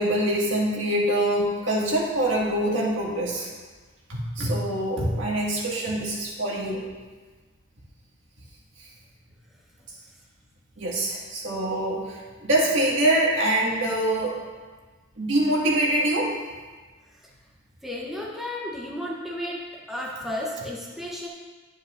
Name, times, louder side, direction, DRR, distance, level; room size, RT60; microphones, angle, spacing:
voice 1, 0.0-3.5 4.1-6.9 10.8-14.3 15.2-16.3, right 1 dB, 75° right, -4 dB, 1.9 m, -24 dB
voice 2, 17.8-19.6 19.9-21.3, left 1 dB, ahead, -4 dB, 0.9 m, -33 dB
10.0 x 9.1 x 2.6 m, 1.4 s
head